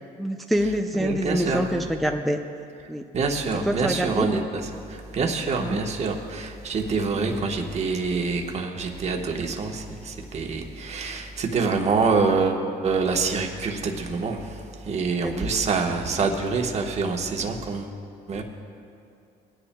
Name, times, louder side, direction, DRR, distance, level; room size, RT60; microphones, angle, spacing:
voice 1, 0.2-2.4 2.9-3.0 3.7-4.3 5.6-5.8 7.2-7.5 15.2-15.5, equal, ahead, 4 dB, 0.4 m, -26 dB
voice 2, 0.9-1.7 3.1-17.9 18.3-18.4, right 4 dB, 40° right, 2 dB, 1.2 m, -26 dB
22.0 x 10.0 x 2.2 m, 2.5 s
cardioid pair, 110°, 17 cm